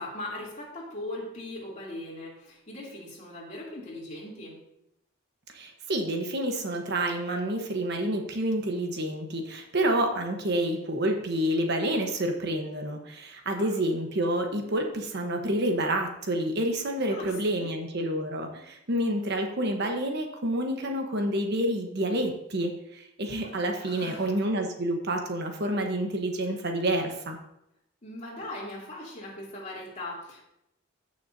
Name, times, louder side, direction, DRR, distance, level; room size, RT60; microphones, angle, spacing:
voice 1, 0.0-4.6 13.5-13.7 17.1-17.8 23.4-24.5 28.0-30.4, left 1 dB, 35° left, -4 dB, 3.0 m, -40 dB
voice 2, 5.5-27.4, right 1 dB, 55° right, 3 dB, 1.2 m, -28 dB
14.5 x 6.5 x 2.8 m, 0.81 s
head